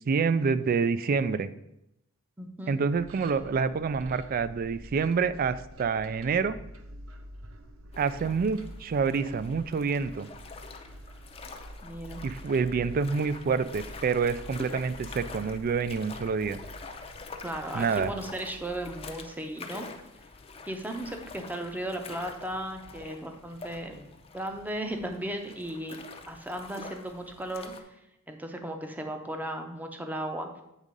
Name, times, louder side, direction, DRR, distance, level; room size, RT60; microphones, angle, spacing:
voice 1, 0.1-1.5 2.7-6.6 8.0-10.3 12.2-16.6 17.7-18.1, right 5 dB, 45° right, 15 dB, 0.3 m, -27 dB
voice 2, 2.4-2.8 11.8-12.2 17.4-19.9 20.7-24.1 24.3-26.0 26.3-27.7 28.3-30.5, right 1 dB, 10° right, 4 dB, 0.7 m, -36 dB
sound 1, 3.0-19.2, equal, 70° right, 0.7 m, -47 dB
sound 2, 7.9-27.8, left 4 dB, 30° left, 0.6 m, -46 dB
8.2 x 3.6 x 5.2 m, 0.84 s
head